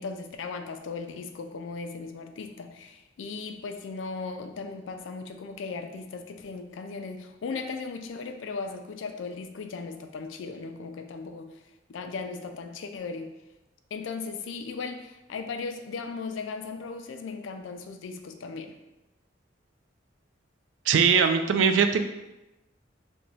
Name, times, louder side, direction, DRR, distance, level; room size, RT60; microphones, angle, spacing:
voice 1, 0.0-11.6 11.9-13.3 13.9-18.8, left 4 dB, 85° left, 6 dB, 0.4 m, -37 dB
voice 2, 20.9-22.0, right 6 dB, 75° right, 7 dB, 0.3 m, -21 dB
2.9 x 2.2 x 4.0 m, 1.0 s
head